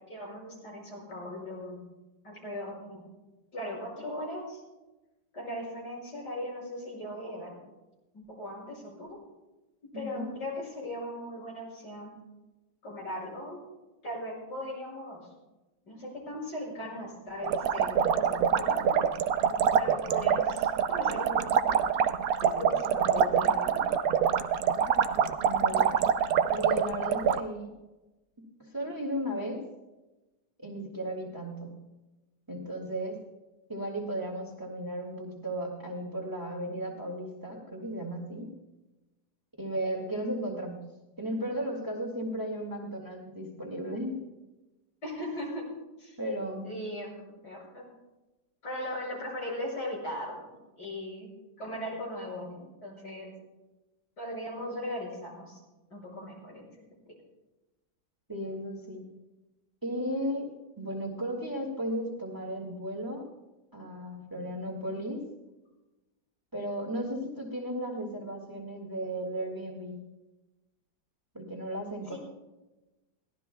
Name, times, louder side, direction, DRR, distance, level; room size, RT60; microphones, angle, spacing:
voice 1, 0.1-1.8 2.2-3.0 3.5-4.6 5.3-7.6 8.1-9.2 9.9-12.1 12.8-13.6 14.0-15.3 15.8-19.1 19.8-21.4 21.7-21.8 22.4-23.9 45.0-45.6 46.0-46.2 46.6-47.8 48.6-50.5 50.8-51.3 51.6-53.3 54.2-55.6 55.9-56.7 72.1-72.2, left 1 dB, 75° left, -3 dB, 6.7 m, -38 dB
voice 2, 9.9-10.3 25.4-26.2 26.5-27.7 28.4-29.6 30.6-31.8 32.5-33.2 33.7-38.5 39.6-40.8 41.2-44.2 46.2-46.8 58.3-59.1 59.8-63.3 63.7-65.2 66.5-70.0 71.3-72.2, equal, 10° right, 0 dB, 1.9 m, -35 dB
sound 1, 17.4-27.4, right 7 dB, 65° right, 1.0 m, -25 dB
23.0 x 17.5 x 2.3 m, 1.1 s
omnidirectional pair, 1.9 m